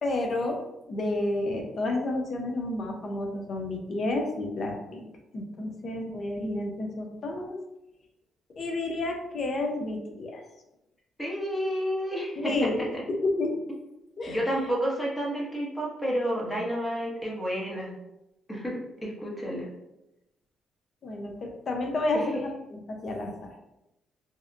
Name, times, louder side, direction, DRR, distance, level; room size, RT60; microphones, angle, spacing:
voice 1, 0.0-0.6 0.9-5.1 5.3-7.6 8.6-10.4 12.4-13.6 14.2-14.7 21.0-23.5, left 2 dB, 50° left, 2 dB, 0.5 m, -30 dB
voice 2, 11.2-12.7 14.3-17.9 18.5-19.7 22.1-22.2, equal, 15° left, -3 dB, 0.8 m, -30 dB
2.7 x 2.1 x 2.4 m, 0.91 s
cardioid pair, 90°, 0 cm